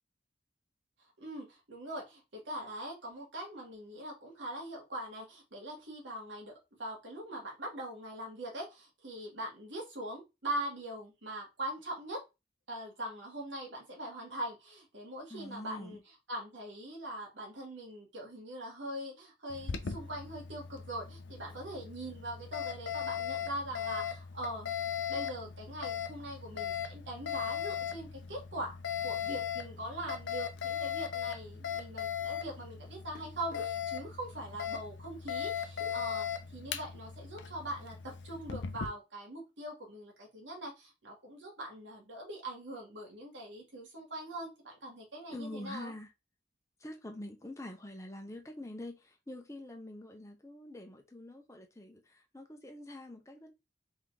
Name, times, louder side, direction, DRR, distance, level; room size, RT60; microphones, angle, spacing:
voice 1, 1.2-12.2 12.7-16.0 16.3-24.7 25.1-28.8 29.0-36.2 36.5-45.9, right 1 dB, 90° right, 1.9 m, -42 dB
voice 2, 15.3-16.0 45.3-46.1 46.8-53.5, left 1 dB, 15° left, 0.7 m, -45 dB
Alarm, 19.5-38.9, left 8 dB, 90° left, 0.6 m, -38 dB
3.9 x 3.5 x 3.3 m
head